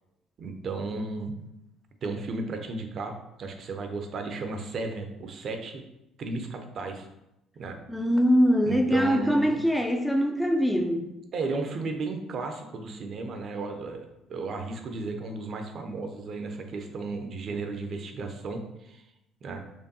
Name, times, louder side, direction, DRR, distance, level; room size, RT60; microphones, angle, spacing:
voice 1, 0.4-1.4 2.0-3.1 3.4-5.8 6.2-7.1 7.5-7.8 8.6-9.6 11.3-19.0 19.4-19.6, right 3 dB, 50° right, 5 dB, 0.5 m, -34 dB
voice 2, 7.9-11.1, equal, 5° left, 4 dB, 0.4 m, -23 dB
4.4 x 2.5 x 2.7 m, 0.89 s
figure-of-eight pair, 50°, 0 cm